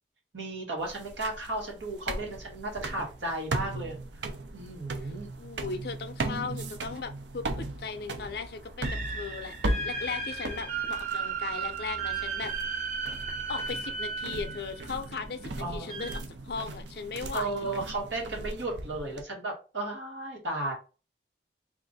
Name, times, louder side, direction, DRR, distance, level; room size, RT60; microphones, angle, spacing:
voice 1, 0.3-4.0 4.5-5.3 15.6-16.0 17.3-20.7, right 2 dB, 90° right, 1.8 m, -34 dB
sound 1, 0.8-19.2, right 2 dB, 75° right, 0.6 m, -38 dB
voice 2, 5.4-12.5 13.5-17.7, left 4 dB, 55° left, 0.5 m, -37 dB
sound 2, 8.8-14.9 15.9-16.2, right 5 dB, 40° right, 0.9 m, -35 dB
3.5 x 2.5 x 4.0 m
head